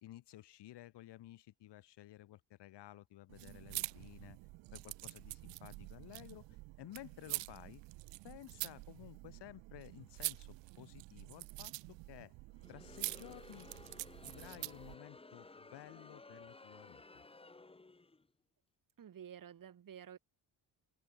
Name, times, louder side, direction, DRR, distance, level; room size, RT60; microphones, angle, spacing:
voice 1, 0.0-4.4 4.7-6.5 6.8-7.8 8.2-12.3 12.7-13.7 14.2-17.2, left 14 dB, 70° left, 2.8 m, -54 dB
sound 1, 3.3-15.0, right 22 dB, 85° right, 0.7 m, -46 dB
Crowd, 12.5-18.3, left 3 dB, 15° left, 1.5 m, -56 dB
voice 2, 19.0-20.2, right 9 dB, 50° right, 5.5 m, -51 dB
cardioid pair, 105°, 42 cm